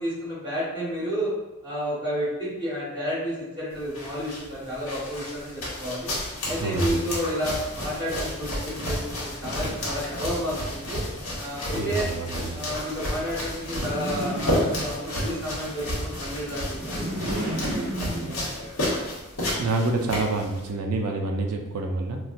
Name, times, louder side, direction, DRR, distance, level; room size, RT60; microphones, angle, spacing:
voice 1, 0.0-1.3 1.6-6.1 6.5-11.0 11.4-12.1 12.5-18.9, equal, 20° right, -10 dB, 1.4 m, -31 dB
sound 1, 3.7-20.7, left 1 dB, 70° left, 1.1 m, -32 dB
voice 2, 6.6-7.0 11.7-12.6 19.6-22.2, right 2 dB, 85° right, 3 dB, 0.4 m, -27 dB
sound 2, 13.6-15.3 16.7-18.8, right 1 dB, 70° right, 0.9 m, -32 dB
4.0 x 2.2 x 2.4 m, 1.0 s
head